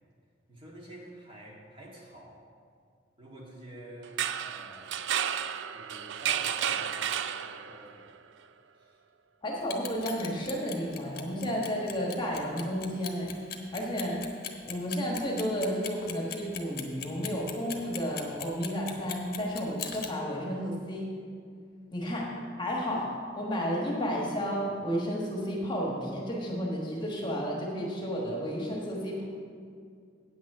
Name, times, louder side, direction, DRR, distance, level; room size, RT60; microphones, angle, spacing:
voice 1, 0.5-2.4 3.2-5.1 5.7-8.1 8.8-9.0, right 1 dB, 30° right, -3 dB, 1.8 m, -49 dB
sound 1, 4.0-7.9, right 9 dB, 70° right, 0.4 m, -32 dB
voice 2, 9.4-13.3 13.7-14.2 14.6-21.1 21.9-22.3 22.6-29.2, equal, 25° left, -2 dB, 1.4 m, -32 dB
Clock, 9.6-20.1, left 9 dB, 50° left, 1.0 m, -39 dB
8.9 x 6.2 x 7.3 m, 2.2 s
head